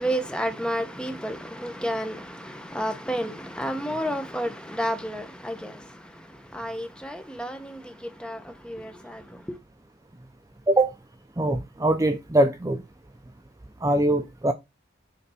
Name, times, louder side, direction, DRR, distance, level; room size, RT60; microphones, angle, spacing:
voice 1, 0.0-9.6, equal, 5° left, 0.8 m, -31 dB
voice 2, 11.4-12.8 13.8-14.5, right 1 dB, 15° right, 0.5 m, -22 dB
6.7 x 3.4 x 5.6 m
head